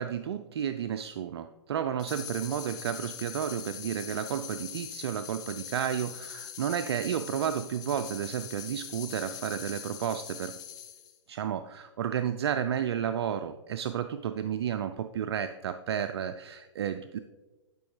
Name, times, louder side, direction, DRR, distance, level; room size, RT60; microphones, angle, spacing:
voice 1, 0.0-10.6 11.3-17.2, right 9 dB, 60° right, 9 dB, 0.4 m, -32 dB
sound 1, 2.0-11.2, left 10 dB, 25° left, 0.7 m, -42 dB
11.0 x 5.2 x 3.2 m, 1.1 s
hypercardioid pair, 120°, 15 cm